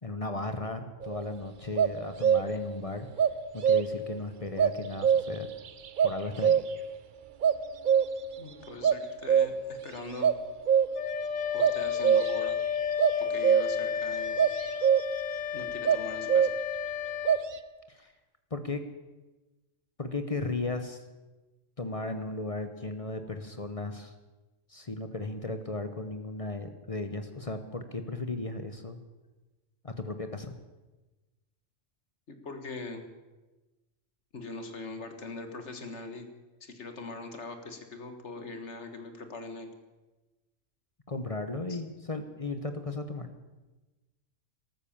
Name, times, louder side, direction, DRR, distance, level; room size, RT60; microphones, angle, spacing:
voice 1, 0.0-3.1 3.5-5.5 6.0-6.6 17.9-18.1 18.5-18.8 20.0-21.0 21.8-24.1 24.7-29.0 29.8-30.5 41.1-43.3, left 2 dB, 30° left, 8 dB, 0.9 m, -35 dB
sound 1, 1.0-1.3 1.8-2.7 3.2-4.1 4.6-5.5 6.0-6.9 7.4-8.3 8.8-9.8 10.2-11.2 11.6-12.5 13.0-13.9 14.4-15.3 15.9-16.8 17.3-17.5, right 8 dB, 50° right, 0.7 m, -24 dB
voice 2, 8.4-10.3 11.5-12.6 13.2-14.4 15.5-16.5 32.3-33.0 34.3-36.3 36.6-39.7 41.7-41.8, left 3 dB, 65° left, 7 dB, 1.8 m, -42 dB
Wind instrument woodwind instrument, 10.9-17.5, left 8 dB, 90° left, 1.2 m, -32 dB
14.0 x 13.0 x 7.3 m, 1.2 s
omnidirectional pair, 1.3 m